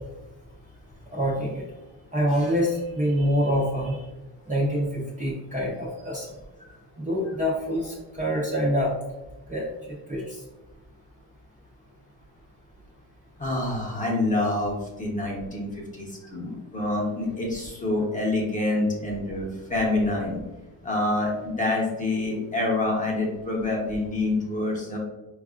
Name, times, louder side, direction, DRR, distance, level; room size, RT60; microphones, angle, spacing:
voice 1, 1.1-1.6 2.1-4.0 4.5-6.3 6.6-6.7 7.0-8.9 9.5-10.4, equal, 20° right, -5 dB, 0.6 m, -26 dB
voice 2, 13.4-20.4 20.8-25.0, left 2 dB, 20° left, -3 dB, 0.9 m, -27 dB
4.6 x 2.4 x 2.4 m, 1.0 s
cardioid pair, 120°, 44 cm